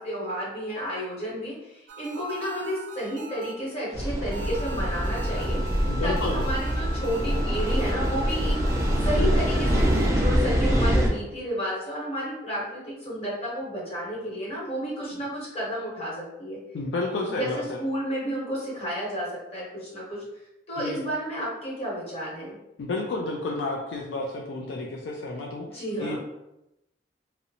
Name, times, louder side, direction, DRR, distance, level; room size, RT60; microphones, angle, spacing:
voice 1, 0.0-8.6 9.0-16.6 17.3-20.2 20.7-22.6 25.7-26.2, equal, 35° left, -6 dB, 1.0 m, -32 dB
sound 1, 1.9-3.9 4.3-10.1, right 1 dB, 85° right, 0.4 m, -40 dB
sound 2, 3.9-11.1, equal, 15° right, 0.4 m, -24 dB
voice 2, 5.9-6.4 9.2-9.5 16.7-17.8 20.8-21.0 22.8-26.2, left 2 dB, 80° left, 0 dB, 0.3 m, -31 dB
2.7 x 2.0 x 2.7 m, 0.89 s
head